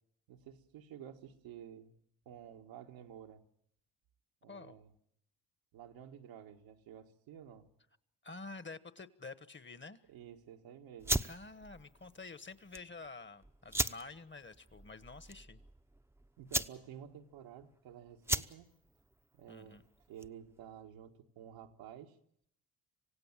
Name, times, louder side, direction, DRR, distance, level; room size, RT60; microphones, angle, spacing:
voice 1, 0.3-1.9 2.3-3.4 4.4-4.9 5.7-7.7 10.1-11.2 16.4-18.7 19.3-19.8 20.1-22.2, right 9 dB, 90° right, 3 dB, 1.8 m, -52 dB
voice 2, 8.2-10.0 11.2-15.6 19.5-19.8, left 3 dB, 25° left, 14 dB, 1.3 m, -49 dB
sound 1, 11.0-20.5, right 1 dB, 5° right, 0.8 m, -39 dB
27.0 x 16.5 x 7.4 m, 0.74 s
supercardioid pair, 65°, 44 cm